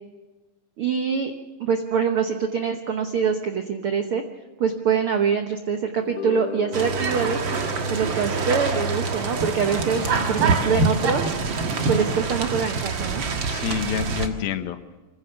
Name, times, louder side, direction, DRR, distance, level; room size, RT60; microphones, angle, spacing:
voice 1, 0.8-1.3 1.6-4.2 4.6-7.4 7.9-11.2 11.9-13.2, right 6 dB, 80° right, 6 dB, 1.2 m, -24 dB
sound 1, 6.0-12.5, left 10 dB, 70° left, 2.4 m, -40 dB
sound 2, 6.7-14.3, right 4 dB, 50° right, 1.6 m, -25 dB
voice 2, 10.0-10.7 13.5-14.8, left 8 dB, 90° left, 9 dB, 2.9 m, -29 dB
25.0 x 15.5 x 7.0 m, 1.2 s
omnidirectional pair, 4.1 m